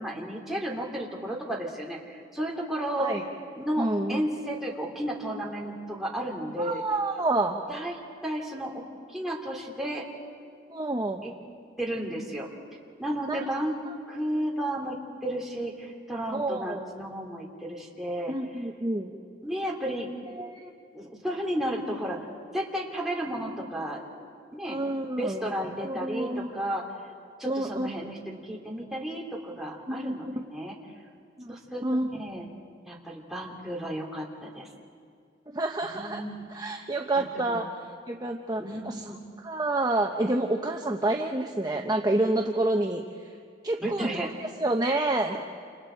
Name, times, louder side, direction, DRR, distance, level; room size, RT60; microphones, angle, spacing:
voice 1, 0.0-3.2 3.5-6.8 7.7-8.0 8.2-8.8 9.1-10.1 11.2-11.3 11.8-12.5 13.0-13.8 14.1-18.3 19.4-20.1 20.9-22.3 22.5-24.0 24.5-24.9 25.2-26.8 27.4-30.8 31.5-31.8 32.2-32.5 32.9-34.7 35.8-36.4 37.1-37.6 38.6-39.2 43.8-44.3, right 1 dB, ahead, -3 dB, 2.8 m, -33 dB
voice 2, 3.8-4.2 6.6-7.6 10.7-11.2 13.3-13.5 16.3-16.8 18.3-19.1 20.3-20.7 24.7-25.4 25.8-26.5 27.5-27.9 29.9-30.3 31.4-31.5 31.8-32.1 35.5-36.2 36.5-37.6 38.1-39.0 39.4-43.3 43.6-45.4, right 2 dB, 20° right, 2 dB, 0.8 m, -28 dB
28.5 x 27.5 x 4.5 m, 2.2 s
head